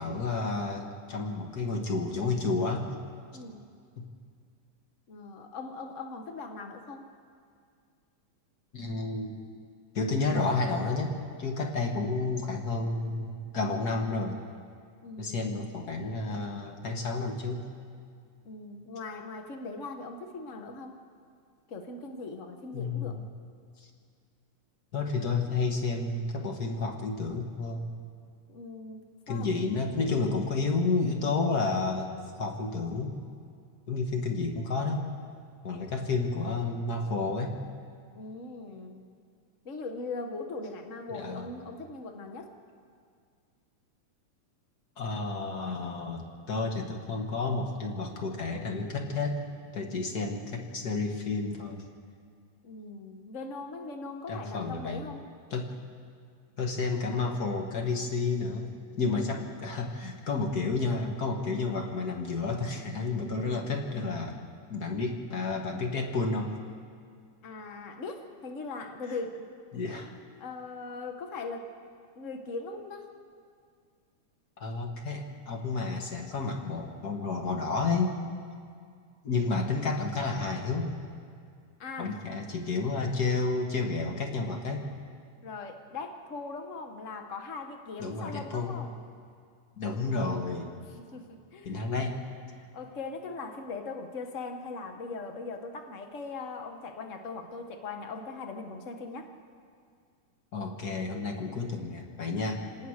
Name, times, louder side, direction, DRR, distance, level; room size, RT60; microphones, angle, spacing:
voice 1, 0.0-2.9 4.0-4.1 8.7-9.4 9.9-11.1 11.4-14.4 15.2-17.7 22.7-23.2 24.9-27.9 29.3-32.1 32.4-33.2 33.9-35.0 35.6-37.5 41.1-41.5 45.0-49.4 49.7-51.8 54.3-55.0 55.5-55.7 56.6-58.7 59.0-64.4 64.7-66.5 69.7-70.1 74.6-78.2 79.2-80.9 82.0-84.9 88.0-88.8 89.8-90.7 91.6-92.2 100.5-102.6, left 3 dB, 35° left, 2 dB, 1.9 m, -31 dB
voice 2, 3.3-3.6 5.1-7.1 15.0-15.7 18.4-21.0 21.7-23.2 28.5-29.7 38.1-39.1 39.6-42.5 52.6-55.2 67.4-69.4 70.4-71.7 72.2-73.1 81.8-82.1 85.4-89.0 90.9-91.8 92.6-99.3 102.8-102.9, left 3 dB, 75° left, 4 dB, 0.7 m, -40 dB
27.0 x 18.5 x 6.6 m, 2.2 s
omnidirectional pair, 3.4 m